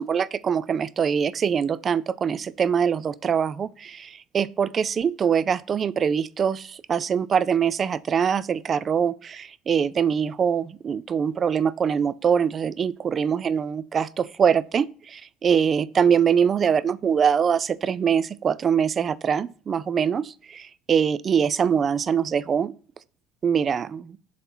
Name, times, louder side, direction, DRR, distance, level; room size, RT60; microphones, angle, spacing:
voice 1, 0.0-22.7 23.4-24.2, right 7 dB, 35° right, 0.3 m, -23 dB
7.2 x 4.1 x 4.3 m
supercardioid pair, 110°, 0 cm